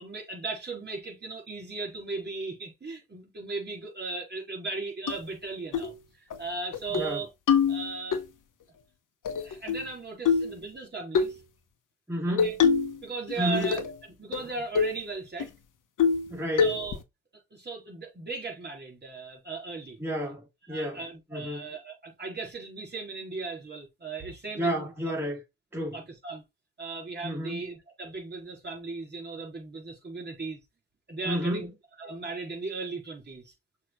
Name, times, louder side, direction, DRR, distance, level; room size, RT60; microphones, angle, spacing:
voice 1, 0.0-7.3 7.7-8.2 9.4-11.4 12.3-12.6 13.0-13.8 14.2-15.5 16.6-17.0 17.5-20.0 20.7-24.9 25.9-26.4 26.8-30.6 31.1-31.7 32.0-33.5, right 3 dB, 25° right, 4.2 m, -37 dB
sound 1, 5.1-5.2 5.7-5.9 6.3-6.4 6.7-7.1 7.5-8.2 9.3-9.9 10.3-10.6 11.1-11.4 12.4-13.0 13.3-14.0 14.3-14.4 14.8-15.0 15.4-15.5 16.0-16.3 16.6-17.0, left 6 dB, 55° left, 1.2 m, -24 dB
voice 2, 12.1-12.5 13.4-13.7 16.3-16.7 20.0-21.0 21.3-21.6 24.6-25.4 25.7-26.0 27.2-27.6 31.3-31.7, equal, 5° right, 3.5 m, -31 dB
6.4 x 3.3 x 4.5 m
supercardioid pair, 70°, 37 cm